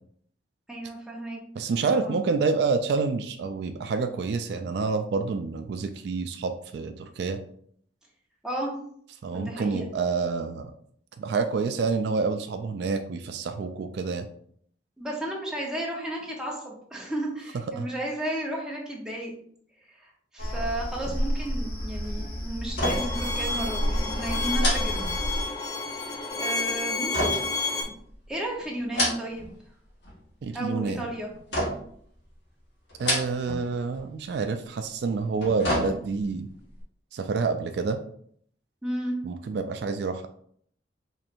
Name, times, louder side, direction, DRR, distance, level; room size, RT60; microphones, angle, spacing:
voice 1, 0.7-1.4 1.9-2.2 8.4-8.7 9.3-9.9 15.0-19.4 19.9-25.1 26.3-27.5 28.3-29.5 30.5-31.3 38.8-39.2, right 1 dB, 5° right, -3 dB, 0.8 m, -33 dB
voice 2, 1.6-7.4 9.2-10.7 11.2-14.3 17.8-17.9 30.4-31.1 33.0-36.5 37.1-38.0 39.2-40.3, right 4 dB, 65° right, 8 dB, 0.3 m, -28 dB
sound 1, 20.4-25.4, equal, 55° left, 1.0 m, -30 dB
sound 2, 22.7-23.3 23.5-23.7 24.6-25.7 27.1-28.2 28.8-29.6 29.9-30.4 31.5-32.0 32.9-33.7 33.9-34.1 35.2-36.3 36.8-36.9, left 1 dB, 80° left, 1.3 m, -29 dB
Bowed string instrument, 22.8-27.8, left 3 dB, 20° left, 0.4 m, -30 dB
4.4 x 3.1 x 2.5 m, 0.63 s
head